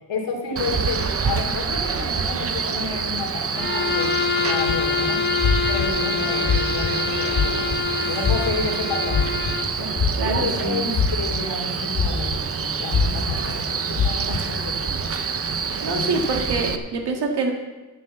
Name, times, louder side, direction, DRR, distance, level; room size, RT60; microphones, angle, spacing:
voice 1, 0.1-5.2 5.7-7.7 8.1-9.2 9.8-15.1 15.9-16.4, left 3 dB, 70° left, -1 dB, 2.9 m, -31 dB
Male speech man speaking, 0.6-16.8, right 5 dB, 30° right, 0.7 m, -27 dB
Bowed string instrument, 3.6-9.7, left 7 dB, 25° left, 0.7 m, -26 dB
sound 1, 4.7-4.9 5.4-5.9 6.4-6.9 7.3-7.8 8.2-8.7 9.1-9.5 9.9-10.6 10.9-11.4 11.9-12.4 12.9-13.4 13.9-14.4, left 6 dB, 50° left, 1.7 m, -21 dB
voice 2, 10.2-10.8 15.8-17.5, right 3 dB, 60° right, 1 dB, 1.9 m, -25 dB
11.5 x 6.8 x 7.5 m, 1.2 s
wide cardioid pair, 145°, 45 cm